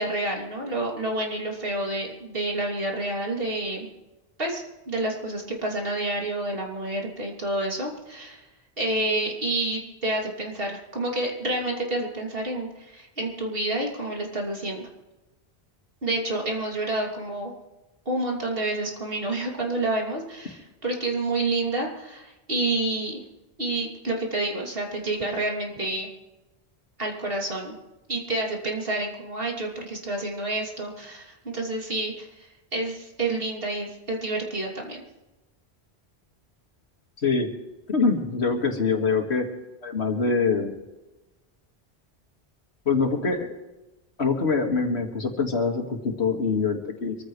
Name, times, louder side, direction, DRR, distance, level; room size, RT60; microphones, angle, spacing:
voice 1, 0.0-3.9 4.4-8.5 8.8-14.9 16.0-17.5 18.0-23.2 23.6-26.1 27.0-27.7 28.1-35.0, right 2 dB, 60° right, -1 dB, 3.1 m, -29 dB
voice 2, 37.9-39.5 39.8-40.7 42.9-43.5 44.2-47.2, left 4 dB, 90° left, 3 dB, 2.3 m, -24 dB
25.5 x 14.5 x 3.2 m, 1.1 s
omnidirectional pair, 1.1 m